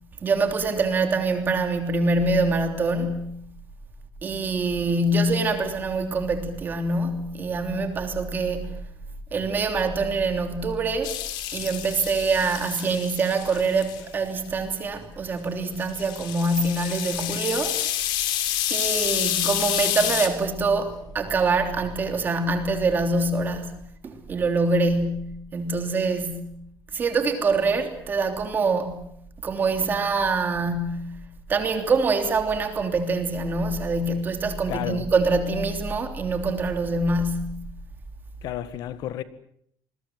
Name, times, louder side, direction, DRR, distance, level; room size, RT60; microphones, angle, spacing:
voice 1, 0.2-3.4 4.2-8.7 9.3-11.1 11.5-17.8 18.7-23.7 24.0-26.5 26.9-29.1 29.4-31.2 31.5-37.6, right 3 dB, 25° right, 3.1 m, -25 dB
sound 1, 11.0-14.0 15.8-20.3, left 12 dB, 85° left, 3.5 m, -28 dB
voice 2, 34.7-35.1 38.4-39.2, left 12 dB, 60° left, 1.7 m, -31 dB
27.5 x 22.0 x 7.5 m
cardioid pair, 180°, 8 cm